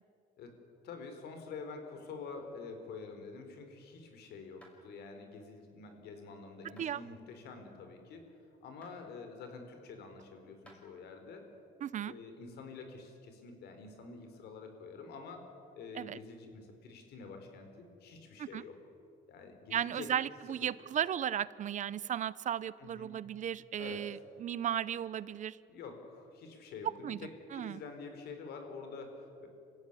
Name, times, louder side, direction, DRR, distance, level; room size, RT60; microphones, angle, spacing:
voice 1, 0.8-8.3 8.6-11.5 12.1-18.8 19.3-20.1 22.8-23.1 23.8-24.2 25.7-29.5, left 4 dB, 75° left, 6 dB, 4.6 m, -47 dB
sound 1, 4.6-4.8 6.8-7.0 8.8-9.0 10.7-10.8, equal, 5° left, 6.0 m, -58 dB
voice 2, 11.8-12.1 16.0-16.2 18.4-18.6 19.7-25.6 27.0-27.2 27.5-27.8, right 10 dB, 45° right, 19 dB, 0.7 m, -35 dB
26.5 x 15.5 x 9.9 m, 2.5 s
cardioid pair, 110°, 17 cm